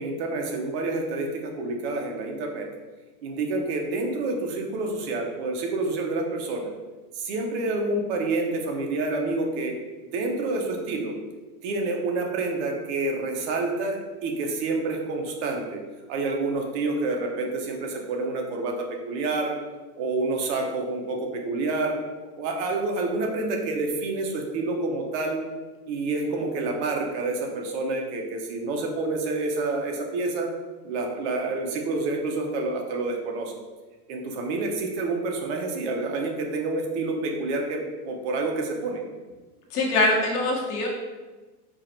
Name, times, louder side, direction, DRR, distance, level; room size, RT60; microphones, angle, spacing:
voice 1, 0.0-2.7 3.2-6.7 7.1-9.7 10.1-11.1 11.6-15.8 16.1-19.5 20.0-22.0 22.4-25.4 25.9-30.5 30.8-33.5 34.1-37.8 38.1-39.0, right 3 dB, 45° right, 2 dB, 0.9 m, -28 dB
voice 2, 39.7-40.9, left 2 dB, 70° left, -1 dB, 1.4 m, -23 dB
4.9 x 2.5 x 4.3 m, 1.3 s
supercardioid pair, 140°, 48 cm